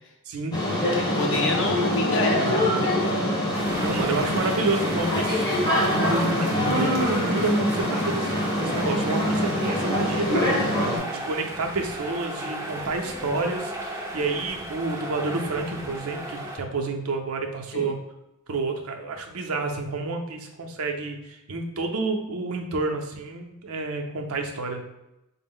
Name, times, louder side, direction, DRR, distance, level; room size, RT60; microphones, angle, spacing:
voice 1, 0.3-0.6 3.8-5.5 5.7-18.0 18.5-24.8, right 3 dB, 80° right, 4 dB, 0.5 m, -29 dB
sound 1, 0.5-11.0, left 1 dB, 20° left, 0.7 m, -24 dB
voice 2, 1.0-3.2 17.7-17.9, left 2 dB, 60° left, 1 dB, 0.7 m, -28 dB
sound 2, 3.5-16.6, right 1 dB, 15° right, 0.4 m, -35 dB
4.3 x 2.0 x 3.5 m, 0.90 s
head